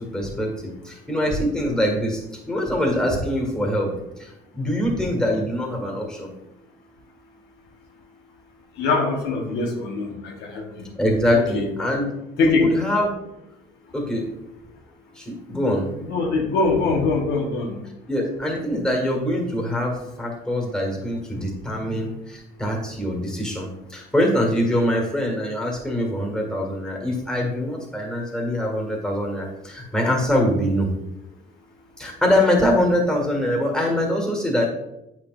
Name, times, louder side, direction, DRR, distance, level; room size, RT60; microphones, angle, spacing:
voice 1, 0.0-2.2 2.5-3.9 4.2-6.3 11.0-12.1 12.4-13.1 13.9-14.3 15.1-15.8 18.1-30.9 32.0-34.7, left 1 dB, 5° left, -1 dB, 1.7 m, -23 dB
voice 2, 8.8-10.8 11.3-11.7 12.4-12.7 16.0-17.8, left 3 dB, 85° left, 0 dB, 1.2 m, -23 dB
8.0 x 6.0 x 2.5 m, 0.88 s
cardioid pair, 110°, 17 cm